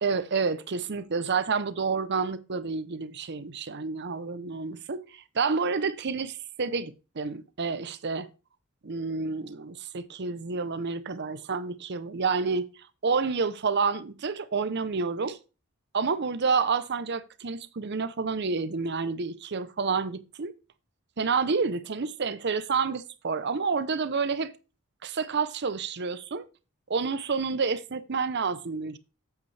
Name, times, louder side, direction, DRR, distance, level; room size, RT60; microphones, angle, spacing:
voice 1, 0.0-8.3 8.8-12.7 13.0-15.4 15.9-20.5 21.2-24.5 25.0-26.5 26.9-29.0, right 5 dB, 50° right, 0.7 m, -29 dB
8.2 x 8.1 x 3.3 m
head